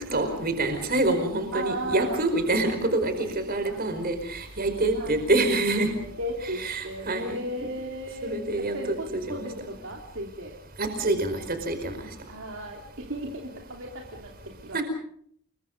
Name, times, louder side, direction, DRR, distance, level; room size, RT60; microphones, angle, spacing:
voice 1, 0.1-5.9 6.4-7.4 8.2-9.5 10.8-12.1 14.7-14.8, right 2 dB, 40° right, 7 dB, 4.8 m, -26 dB
voice 2, 1.5-2.2 3.6-4.1 4.9-5.2 6.0-10.6 11.0-11.2 12.3-14.8, right 1 dB, 60° right, 0 dB, 3.2 m, -36 dB
28.0 x 23.0 x 5.3 m, 0.64 s
head